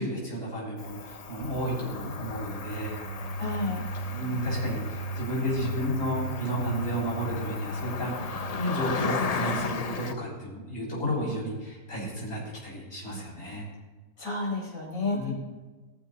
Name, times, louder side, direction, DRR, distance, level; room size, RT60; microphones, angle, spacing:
voice 1, 0.0-3.0 4.1-13.7 15.1-15.3, right 1 dB, 45° left, -6 dB, 6.5 m, -32 dB
Cricket, 0.8-10.1, left 5 dB, 85° left, 0.3 m, -36 dB
sound 1, 1.4-9.2, equal, 85° right, 1.6 m, -36 dB
voice 2, 3.4-3.8 14.2-15.3, left 2 dB, 60° left, -4 dB, 5.0 m, -31 dB
22.5 x 14.0 x 2.9 m, 1.3 s
omnidirectional pair, 1.6 m